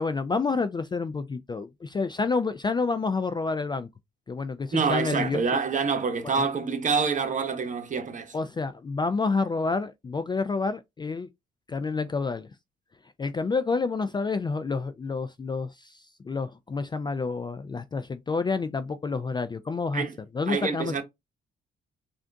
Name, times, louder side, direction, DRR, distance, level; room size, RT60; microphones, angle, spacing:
voice 1, 0.0-3.9 4.3-5.4 8.3-11.3 11.7-12.5 13.2-20.0 20.3-21.0, left 4 dB, 20° left, 0.3 m, -29 dB
voice 2, 4.7-8.4 19.9-20.2 20.5-21.0, right 5 dB, 40° right, 1.0 m, -27 dB
3.6 x 2.5 x 3.4 m
cardioid pair, 90°, 20 cm